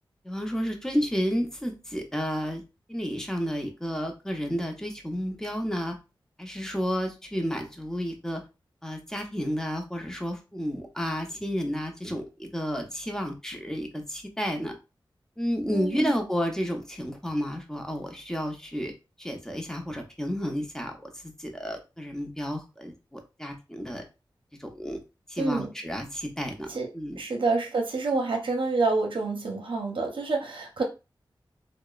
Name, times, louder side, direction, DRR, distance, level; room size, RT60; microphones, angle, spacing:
voice 1, 0.2-2.6 2.9-6.0 6.4-8.4 8.8-14.7 15.4-18.9 19.2-21.0 21.4-24.0 24.6-25.0 25.3-26.7 26.9-27.2, equal, 5° left, 3 dB, 0.7 m, -31 dB
voice 2, 15.7-16.1 25.4-25.7 26.7-26.9 27.2-30.8, right 3 dB, 70° right, 1 dB, 0.7 m, -27 dB
2.8 x 2.0 x 2.3 m, 0.28 s
cardioid pair, 45°, 9 cm